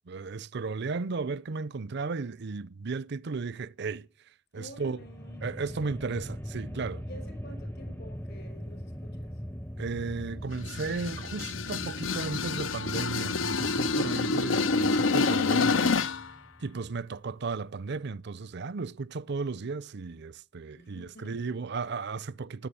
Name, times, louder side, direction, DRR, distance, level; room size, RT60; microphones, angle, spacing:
voice 1, 0.1-4.1 4.5-5.0 5.4-7.0 9.8-15.9 16.6-22.7, right 4 dB, 60° right, 0.6 m, -35 dB
voice 2, 4.5-5.4 5.7-5.9 7.0-9.3 20.8-21.7, equal, 60° left, 5.5 m, -51 dB
sound 1, 4.7-17.0, equal, 10° left, 0.6 m, -42 dB
sound 2, 10.5-16.3, left 4 dB, 85° left, 0.8 m, -27 dB
13.0 x 9.1 x 8.9 m
head